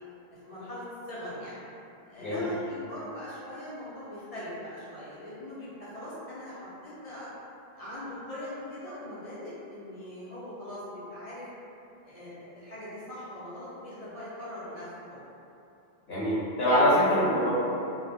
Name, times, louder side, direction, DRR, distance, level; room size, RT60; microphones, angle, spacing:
voice 1, 0.4-1.6 2.1-7.3 7.7-11.5 12.0-15.2, left 1 dB, 45° left, -11 dB, 0.6 m, -41 dB
voice 2, 16.1-17.5, equal, 65° left, -12 dB, 1.0 m, -24 dB
2.3 x 2.0 x 2.7 m, 2.8 s
omnidirectional pair, 1.1 m